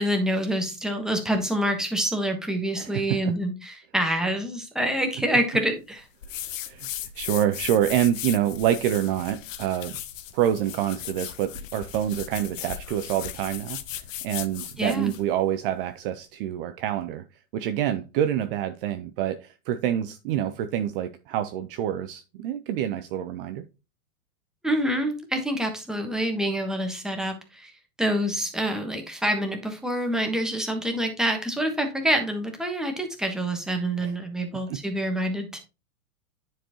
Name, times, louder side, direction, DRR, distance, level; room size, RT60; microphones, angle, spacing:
voice 1, 0.0-6.0 14.8-15.1 24.6-27.7 28.0-35.6, right 1 dB, ahead, 1.3 m, -26 dB
voice 2, 2.7-3.3 5.3-5.4 6.7-6.9 7.1-10.0 10.3-13.8 14.2-17.3 17.5-23.7 34.0-34.1 34.5-34.8, right 11 dB, 40° right, 0.6 m, -27 dB
sound 1, 6.2-15.3, left 11 dB, 60° left, 0.9 m, -37 dB
9.8 x 4.6 x 3.0 m
hypercardioid pair, 105°, 43 cm